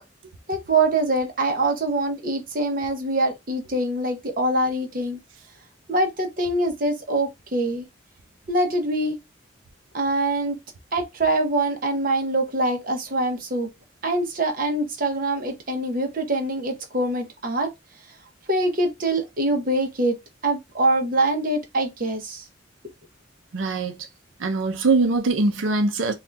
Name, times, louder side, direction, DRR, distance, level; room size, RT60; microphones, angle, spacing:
voice 1, 0.5-5.2 5.9-7.8 8.5-9.2 9.9-10.6 10.9-13.7 14.0-17.7 18.5-20.2 20.4-22.4, right 2 dB, 45° right, 0.9 m, -24 dB
voice 2, 23.5-24.1 24.4-26.1, right 3 dB, 85° right, 0.6 m, -22 dB
2.7 x 2.4 x 3.3 m
head